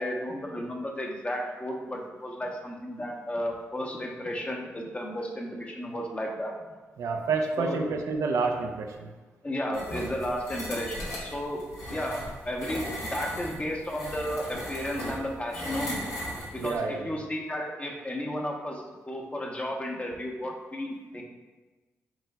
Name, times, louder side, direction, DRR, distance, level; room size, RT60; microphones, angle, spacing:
voice 1, 0.0-6.5 7.6-7.8 9.4-11.6 11.9-16.1 16.5-21.2, equal, 25° left, 0 dB, 0.9 m, -33 dB
voice 2, 7.0-9.1 16.6-17.2, right 4 dB, 75° right, 3 dB, 0.5 m, -29 dB
sound 1, 9.7-16.8, equal, 80° left, 1.1 m, -37 dB
6.0 x 3.9 x 2.2 m, 1.2 s
supercardioid pair, 50°, 5 cm